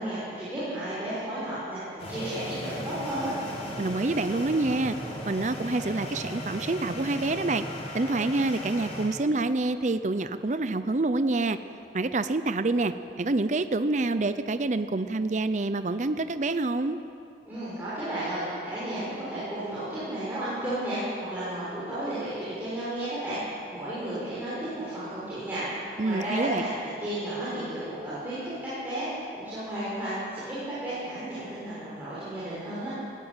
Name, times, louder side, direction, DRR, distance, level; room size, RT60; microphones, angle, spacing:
voice 1, 0.0-3.3 17.5-25.6 26.0-29.1 29.3-32.9, right 1 dB, 10° right, -12 dB, 6.2 m, -33 dB
sound 1, 2.0-9.1, equal, 35° left, 4.8 m, -37 dB
voice 2, 3.8-5.0 5.3-7.6 7.9-11.6 11.9-17.0 26.0-26.6, right 2 dB, 40° right, 11 dB, 0.6 m, -27 dB
19.5 x 16.5 x 8.9 m, 2.6 s
head